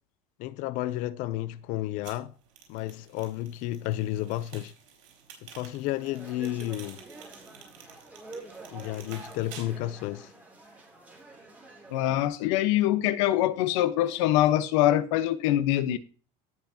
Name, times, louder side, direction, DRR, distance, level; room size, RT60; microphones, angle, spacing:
voice 1, 0.4-2.3 2.7-4.7 5.4-7.0 8.7-10.3, left 14 dB, 55° left, 0.6 m, -32 dB
sound 1, 2.0-9.6, right 7 dB, 80° right, 4.9 m, -51 dB
sound 2, 5.9-12.3, right 2 dB, 10° right, 3.2 m, -47 dB
voice 2, 11.9-16.0, left 13 dB, 85° left, 1.2 m, -24 dB
17.5 x 6.0 x 2.9 m
cardioid pair, 160°, 16 cm